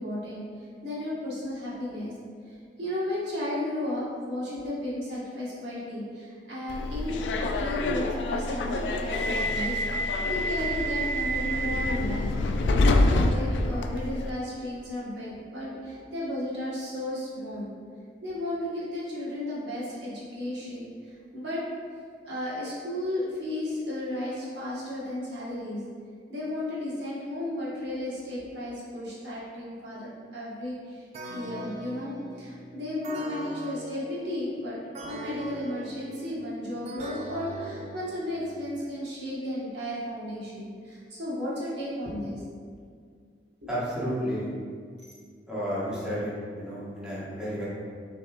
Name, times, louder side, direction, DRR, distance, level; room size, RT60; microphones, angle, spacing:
voice 1, 0.0-2.2 2.5-7.2 7.6-12.3 13.1-17.7 18.2-21.6 22.2-25.8 26.3-31.0 31.3-42.4 43.6-43.7, left 1 dB, 75° right, -8 dB, 1.4 m, -34 dB
Subway metro underground, 6.7-14.3, left 1 dB, 85° left, 0.4 m, -26 dB
sound 1, 31.1-38.8, right 2 dB, 40° right, 0.4 m, -42 dB
voice 2, 43.7-44.5 45.5-46.3 46.6-47.6, equal, 5° right, -10 dB, 1.3 m, -31 dB
6.4 x 3.4 x 2.4 m, 2.1 s
head